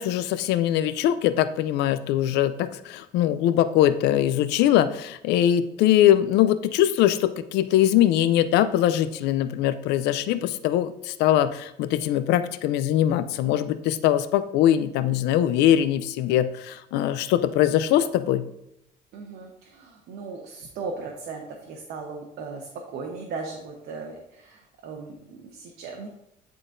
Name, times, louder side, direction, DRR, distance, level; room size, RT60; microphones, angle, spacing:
voice 1, 0.0-18.4, left 12 dB, 85° left, 12 dB, 0.4 m, -22 dB
voice 2, 19.1-26.1, right 4 dB, 75° right, 1 dB, 0.9 m, -37 dB
10.0 x 3.9 x 2.6 m, 0.81 s
cardioid pair, 110°, 17 cm